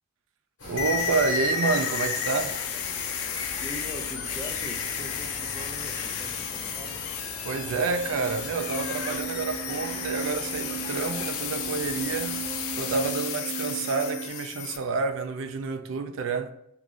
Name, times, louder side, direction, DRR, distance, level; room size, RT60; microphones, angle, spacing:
sound 1, 0.6-13.1, left 2 dB, 55° left, 1.2 m, -40 dB
voice 1, 0.7-2.6 7.4-12.4 12.8-16.5, right 4 dB, 65° right, 0.3 m, -29 dB
sound 2, 0.8-14.8, left 8 dB, 80° left, 0.4 m, -33 dB
voice 2, 3.6-7.0, equal, 15° left, 0.3 m, -42 dB
sound 3, 7.5-14.3, right 8 dB, 80° right, 0.8 m, -38 dB
3.0 x 2.5 x 3.7 m
head